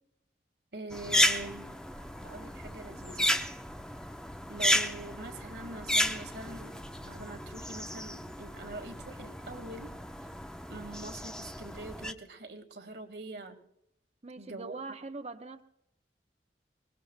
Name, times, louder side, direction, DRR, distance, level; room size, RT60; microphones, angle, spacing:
voice 1, 0.7-1.8 2.2-3.4 4.5-9.9 10.7-13.6 14.4-14.7, right 2 dB, 65° right, 6 dB, 1.9 m, -44 dB
sound 1, 0.9-12.1, left 1 dB, 5° left, 0.8 m, -33 dB
voice 2, 14.2-15.6, right 3 dB, 35° right, 7 dB, 0.8 m, -42 dB
28.5 x 20.5 x 2.2 m, 0.79 s
head